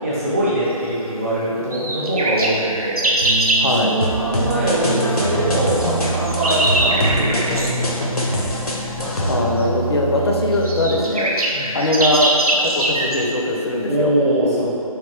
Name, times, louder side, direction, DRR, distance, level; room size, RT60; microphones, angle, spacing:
voice 1, 0.0-3.3 3.7-8.9 11.5-11.8 13.9-14.7, right 1 dB, 25° right, -9 dB, 0.6 m, -23 dB
sound 1, 1.7-3.7 5.8-7.8 9.6-9.7 10.2-10.3 10.5-13.2, right 1 dB, 75° right, 0.5 m, -21 dB
sound 2, 3.2-11.3, right 4 dB, 50° right, 0.9 m, -28 dB
voice 2, 3.6-3.9 9.3-11.3 11.7-14.1, left 1 dB, 45° left, 0 dB, 0.4 m, -20 dB
sound 3, 4.0-9.3, left 1 dB, 90° left, 0.6 m, -24 dB
3.2 x 2.6 x 3.1 m, 2.6 s
figure-of-eight pair, 155°, 19 cm